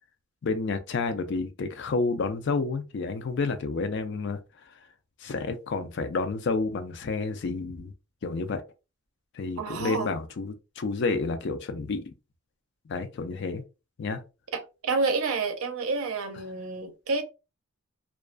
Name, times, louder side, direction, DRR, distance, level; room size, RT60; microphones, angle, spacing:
voice 1, 0.4-4.4 5.2-7.9 8.2-8.6 9.3-12.0 12.9-13.6 14.0-14.2, left 4 dB, 55° left, 0.4 m, -30 dB
voice 2, 9.6-10.1 14.5-17.2, right 4 dB, 85° right, 0.6 m, -29 dB
2.3 x 2.2 x 2.4 m
head